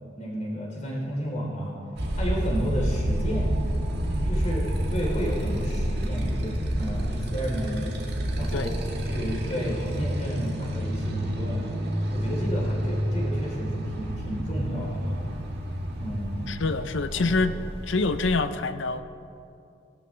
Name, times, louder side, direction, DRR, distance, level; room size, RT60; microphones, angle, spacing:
voice 1, 0.1-1.7 2.1-3.5 4.3-4.6 4.9-7.8 8.3-8.7 9.0-11.7 12.1-15.2 16.0-16.5 17.1-17.5, equal, 35° left, -4 dB, 3.7 m, -32 dB
Motorcycle, 2.0-18.4, equal, 55° right, 1.6 m, -29 dB
voice 2, 16.5-17.5 17.9-19.0, left 3 dB, 70° left, 11 dB, 0.6 m, -26 dB
19.5 x 12.0 x 3.3 m, 2.6 s
head